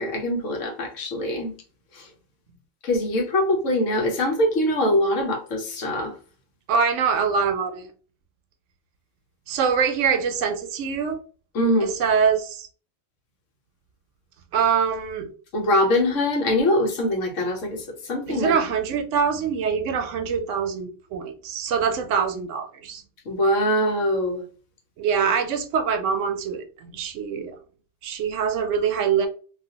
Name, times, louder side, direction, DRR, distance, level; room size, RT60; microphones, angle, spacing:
voice 1, 0.0-1.5 1.9-2.1 2.8-6.1 11.5-11.9 15.5-18.5 23.3-24.4, left 1 dB, 75° left, 1.2 m, -23 dB
voice 2, 6.7-7.9 9.5-11.2 11.8-12.7 14.5-15.3 18.3-23.0 25.0-27.6 28.0-29.3, right 6 dB, 75° right, 0.9 m, -24 dB
3.1 x 2.4 x 2.7 m
omnidirectional pair, 1.3 m